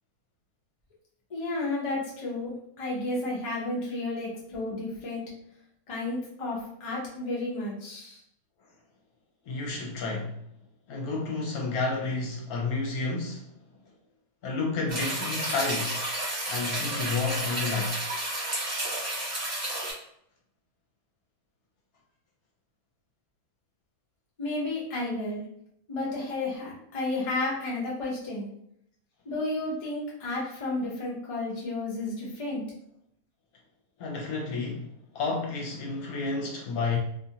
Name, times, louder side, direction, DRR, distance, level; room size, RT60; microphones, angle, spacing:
voice 1, 1.3-5.2 5.9-8.2 24.4-25.4 25.9-28.5 29.2-32.6, left 2 dB, 35° left, 0.6 m, -32 dB
voice 2, 9.5-10.4 10.9-13.5 14.4-16.1 16.5-18.0 34.0-37.0, left 3 dB, 75° left, 1.1 m, -31 dB
sound 1, 14.9-19.9, right 1 dB, 30° right, 0.8 m, -31 dB
2.7 x 2.4 x 2.7 m
omnidirectional pair, 1.6 m